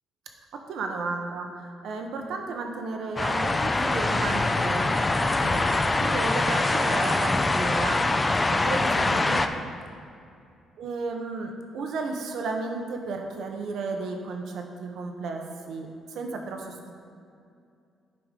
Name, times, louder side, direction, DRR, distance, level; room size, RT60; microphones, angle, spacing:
voice 1, 0.5-9.7 10.8-16.9, right 3 dB, 75° right, 3 dB, 0.9 m, -33 dB
sound 1, 3.2-9.5, left 2 dB, 20° left, 0.4 m, -24 dB
11.5 x 5.0 x 3.8 m, 2.4 s
cardioid pair, 90°, 0 cm